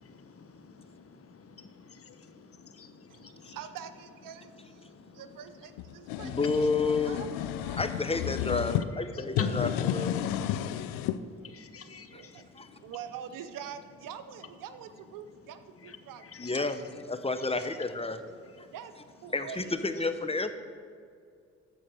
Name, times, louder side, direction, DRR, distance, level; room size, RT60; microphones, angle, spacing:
voice 1, 0.0-3.6 4.3-7.2 8.7-13.0 15.8-18.7, left 4 dB, 45° left, 8 dB, 1.1 m, -47 dB
voice 2, 3.5-4.5 5.2-6.7 7.1-7.9 12.1-12.4 12.8-16.2 16.5-16.7 18.7-18.9 19.2-20.1, right 8 dB, 70° right, 10 dB, 0.8 m, -45 dB
sound 1, 5.8-8.8 9.3-11.2, left 11 dB, 80° left, 0.5 m, -32 dB
voice 3, 6.2-7.2 7.8-10.1 12.6-12.7 16.4-16.8 17.1-18.2 18.6-18.7 19.3-20.5, left 3 dB, 15° left, 9 dB, 1.0 m, -30 dB
13.5 x 4.7 x 7.7 m, 2.3 s
hypercardioid pair, 45°, 33 cm